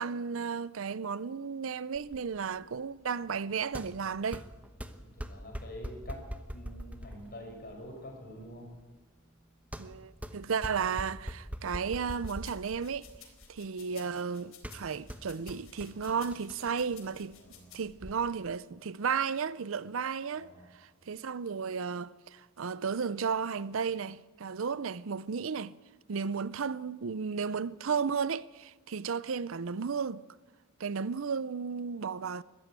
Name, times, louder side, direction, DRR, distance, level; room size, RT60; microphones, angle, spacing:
voice 1, 0.0-4.4 9.8-13.1 13.5-17.4 17.7-20.5 21.1-25.7 26.1-30.2 30.8-32.4, right 6 dB, 65° right, 0.5 m, -34 dB
sound 1, 1.9-18.1, equal, 5° right, 1.1 m, -44 dB
voice 2, 5.0-6.3 6.5-8.7 13.9-14.0 17.3-17.6 20.3-20.7, left 1 dB, 45° left, 6.1 m, -46 dB
sound 2, 12.0-17.8, left 9 dB, 70° left, 4.1 m, -55 dB
21.5 x 14.0 x 8.9 m
head